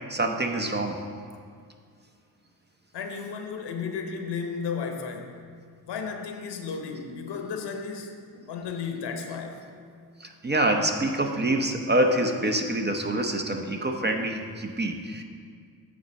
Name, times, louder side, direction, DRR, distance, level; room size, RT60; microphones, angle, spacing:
voice 1, 0.1-1.0 10.2-15.2, right 1 dB, 25° right, 3 dB, 0.8 m, -26 dB
voice 2, 2.9-5.4 5.9-8.2 8.5-9.6, left 5 dB, 65° left, 4 dB, 1.0 m, -34 dB
8.5 x 4.0 x 6.3 m, 2.1 s
supercardioid pair, 60°, 44 cm